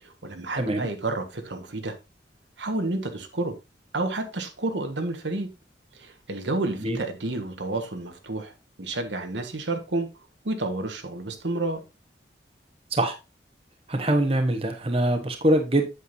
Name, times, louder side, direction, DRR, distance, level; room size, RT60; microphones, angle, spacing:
voice 1, 0.0-1.9 2.6-3.5 3.9-5.5 5.9-10.1 10.4-11.8, right 2 dB, 85° right, 1.4 m, -30 dB
voice 2, 13.9-15.9, right 1 dB, 35° right, 1.1 m, -23 dB
8.3 x 7.8 x 2.7 m
head